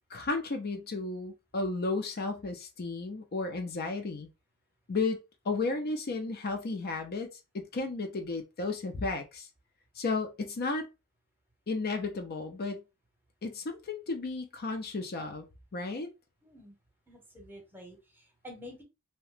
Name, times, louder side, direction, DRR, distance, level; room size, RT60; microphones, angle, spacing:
voice 1, 0.1-4.3 4.9-7.3 7.5-9.5 10.0-10.9 11.7-12.8 13.4-15.5 15.7-16.1, left 3 dB, 50° left, 0.5 m, -33 dB
voice 2, 16.4-16.7 17.1-18.8, left 1 dB, 10° right, 0.9 m, -49 dB
2.8 x 2.1 x 3.2 m
head